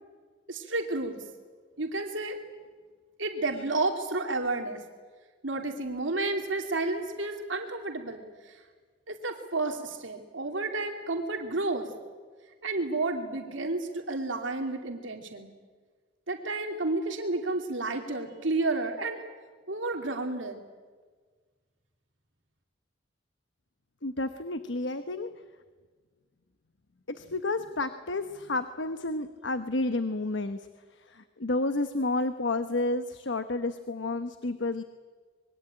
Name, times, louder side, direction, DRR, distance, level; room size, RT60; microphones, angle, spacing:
voice 1, 0.5-1.2 1.8-2.4 3.2-4.8 5.4-8.5 9.1-11.9 12.6-15.5 16.3-19.2 19.7-20.6, right 2 dB, 90° right, 4 dB, 2.8 m, -31 dB
voice 2, 24.0-25.3 27.1-34.8, left 2 dB, 75° left, 10 dB, 1.1 m, -31 dB
26.0 x 22.0 x 8.9 m, 1.5 s
head